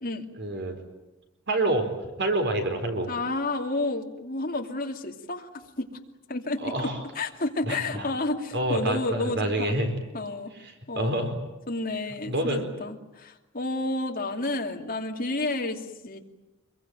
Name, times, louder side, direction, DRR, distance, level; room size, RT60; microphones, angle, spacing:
voice 1, 0.4-0.8 1.5-1.9 2.2-3.1 6.6-7.0 7.7-8.1 8.5-9.9 10.6-11.4 12.3-12.7, right 1 dB, 55° right, 5 dB, 4.3 m, -27 dB
voice 2, 3.1-5.9 6.3-9.8 10.1-10.5 10.9-11.3 11.7-16.2, left 2 dB, 45° left, 2 dB, 2.7 m, -31 dB
26.0 x 23.0 x 9.1 m, 1.0 s
head